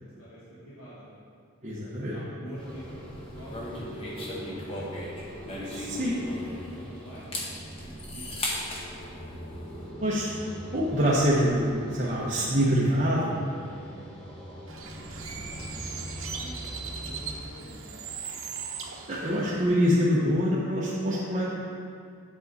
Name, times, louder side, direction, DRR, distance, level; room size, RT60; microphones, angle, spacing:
voice 1, 0.2-1.2 1.8-5.1 5.9-6.2 6.7-8.6 9.0-9.6 15.2-16.7 17.0-17.9, equal, 80° left, -9 dB, 1.6 m, -48 dB
voice 2, 1.6-2.2 5.6-6.2 10.0-10.4 10.7-13.6 19.1-21.4, equal, 35° right, -7 dB, 0.9 m, -25 dB
sound 1, 2.5-17.4, equal, 5° left, 1.4 m, -42 dB
sound 2, 3.5-6.7 7.1-8.9, left 1 dB, 25° left, 1.0 m, -36 dB
Bird, 14.7-19.7, right 5 dB, 70° right, 0.9 m, -39 dB
8.2 x 7.5 x 4.1 m, 2.3 s
head